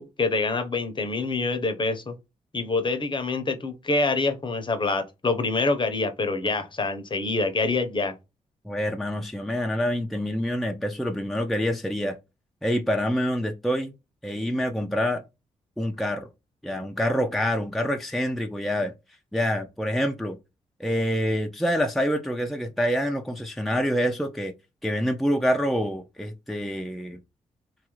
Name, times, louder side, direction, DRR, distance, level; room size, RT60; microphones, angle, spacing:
voice 1, 0.0-2.1 2.5-8.1, left 3 dB, 35° left, 0.7 m, -26 dB
voice 2, 8.6-12.2 12.6-13.9 14.2-15.2 15.8-16.3 16.6-18.9 19.3-20.4 20.8-24.5 24.8-27.2, equal, ahead, 0.4 m, -26 dB
3.0 x 2.4 x 3.0 m
cardioid pair, 65°, 13 cm